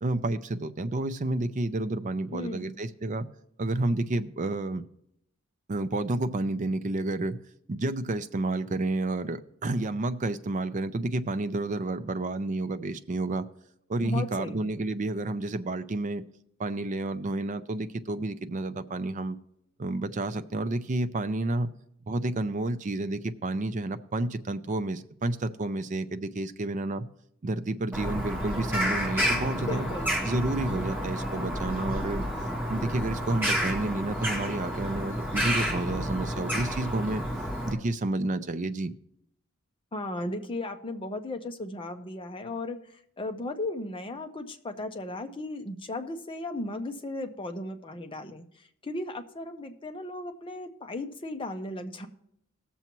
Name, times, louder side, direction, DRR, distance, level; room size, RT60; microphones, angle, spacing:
voice 1, 0.0-3.3 3.6-4.8 5.7-7.4 7.7-13.5 13.9-16.2 16.6-19.4 19.8-21.7 22.1-27.1 27.4-29.9 30.2-32.2 32.7-37.2 37.7-38.9, right 2 dB, 35° right, 11 dB, 0.5 m, -30 dB
voice 2, 2.3-2.7 14.0-14.7 29.6-30.3 39.9-52.1, left 2 dB, 25° left, 6 dB, 0.7 m, -36 dB
Bird vocalization bird call bird song, 27.9-37.7, equal, 10° right, 2.0 m, -30 dB
18.5 x 7.0 x 3.0 m, 0.75 s
head